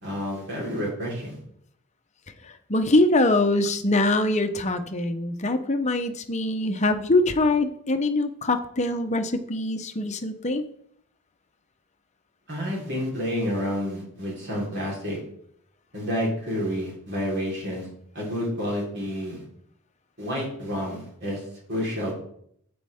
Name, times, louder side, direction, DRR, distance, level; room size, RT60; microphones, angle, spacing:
voice 1, 0.0-1.4 12.5-15.2 15.9-17.9 18.1-19.4 20.2-21.4 21.7-22.1, equal, 50° right, -3 dB, 3.9 m, -29 dB
voice 2, 2.7-10.6, left 2 dB, 30° left, 7 dB, 0.8 m, -23 dB
12.0 x 8.6 x 3.6 m, 0.68 s
head